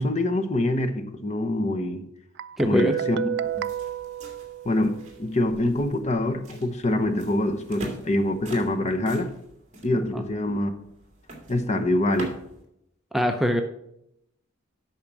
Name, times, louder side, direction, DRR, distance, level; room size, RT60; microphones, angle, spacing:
voice 1, 0.0-2.0 2.6-3.2 3.5-3.7 4.6-9.3 9.8-10.7 11.5-12.3, left 1 dB, 35° left, 7 dB, 0.9 m, -25 dB
Guitar, 2.4-5.2, right 9 dB, 60° right, 0.4 m, -31 dB
voice 2, 2.6-2.9 10.1-10.2 13.1-13.6, equal, ahead, 5 dB, 0.6 m, -23 dB
sound 1, 3.4-12.6, right 1 dB, 35° right, 2.3 m, -44 dB
8.8 x 5.7 x 6.1 m, 0.79 s
head